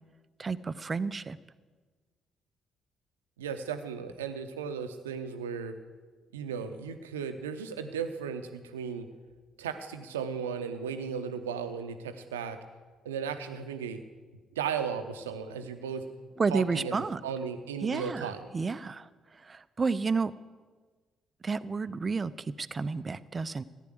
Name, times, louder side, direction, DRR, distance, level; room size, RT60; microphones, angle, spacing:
voice 1, 0.4-1.4 16.4-17.2 17.8-19.1 19.4-20.3 21.4-23.6, right 4 dB, 35° right, 17 dB, 0.6 m, -31 dB
voice 2, 3.4-5.7 6.3-9.1 9.6-12.6 13.0-14.0 14.6-16.0 16.5-18.5, right 7 dB, 80° right, 9 dB, 0.8 m, -35 dB
15.0 x 9.2 x 7.7 m, 1.4 s
figure-of-eight pair, 45°, 0 cm